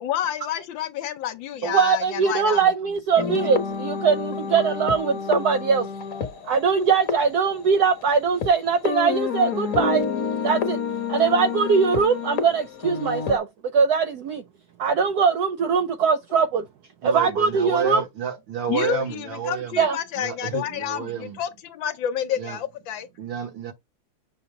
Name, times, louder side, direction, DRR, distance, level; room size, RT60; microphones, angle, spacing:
voice 1, 0.0-2.6 18.7-23.1, left 10 dB, 70° left, 1.4 m, -29 dB
voice 2, 1.6-5.9 6.5-10.0 10.4-10.8 11.1-13.5 13.7-14.4 14.8-16.7 17.0-18.0 19.8-20.0, right 5 dB, 85° right, 0.8 m, -21 dB
sound 1, 3.2-8.5 8.8-13.4, left 5 dB, 45° left, 1.2 m, -29 dB
voice 3, 17.0-19.9 20.2-21.4 22.4-22.6 23.2-23.7, right 6 dB, 65° right, 2.0 m, -30 dB
7.0 x 2.8 x 4.9 m
omnidirectional pair, 2.3 m